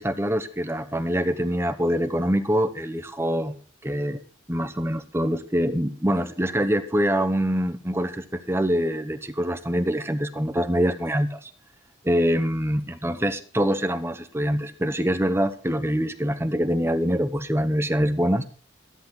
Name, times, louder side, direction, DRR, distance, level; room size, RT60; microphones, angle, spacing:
voice 1, 0.0-3.6 3.8-4.2 4.5-11.5 12.0-18.4, equal, 15° right, 10 dB, 1.0 m, -24 dB
13.5 x 12.5 x 3.9 m, 0.39 s
head